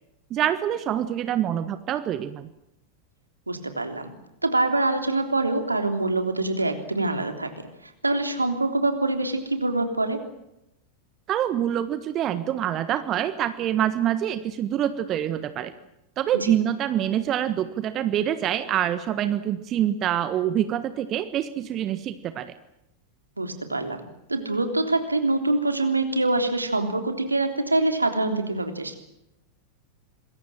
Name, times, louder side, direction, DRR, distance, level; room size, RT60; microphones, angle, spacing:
voice 1, 0.3-2.5 11.3-15.7 16.2-22.6, right 11 dB, 30° right, 12 dB, 1.4 m, -26 dB
voice 2, 3.5-4.1 4.4-10.2 23.4-24.0 24.3-29.0, right 2 dB, 80° right, 6 dB, 3.4 m, -25 dB
26.5 x 22.0 x 7.6 m, 0.85 s
figure-of-eight pair, 90°, 0 cm